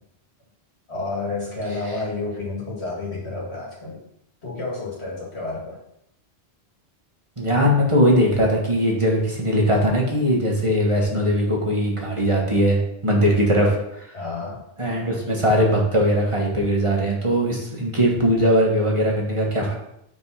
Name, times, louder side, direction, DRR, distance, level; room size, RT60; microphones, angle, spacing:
voice 1, 0.9-4.0 4.4-5.8 13.2-13.5 14.1-14.6, left 3 dB, 85° left, -5 dB, 2.7 m, -30 dB
voice 2, 7.4-14.1 14.8-19.7, equal, 30° right, -2 dB, 1.4 m, -20 dB
5.3 x 4.7 x 5.6 m, 0.79 s
omnidirectional pair, 1.1 m